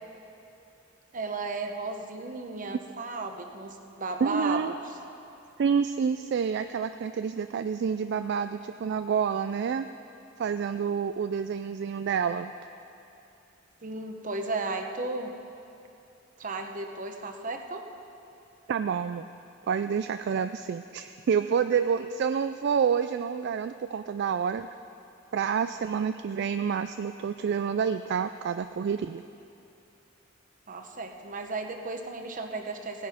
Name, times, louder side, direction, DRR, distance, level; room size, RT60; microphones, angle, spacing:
voice 1, 1.1-4.8 13.8-15.3 16.4-17.8 30.7-33.1, right 3 dB, 40° right, 5 dB, 1.0 m, -34 dB
voice 2, 4.2-4.7 5.6-9.9 10.4-12.5 18.7-19.3 19.7-24.7 25.3-29.2, right 6 dB, 55° right, 10 dB, 0.3 m, -28 dB
17.0 x 10.0 x 5.0 m, 2.7 s
head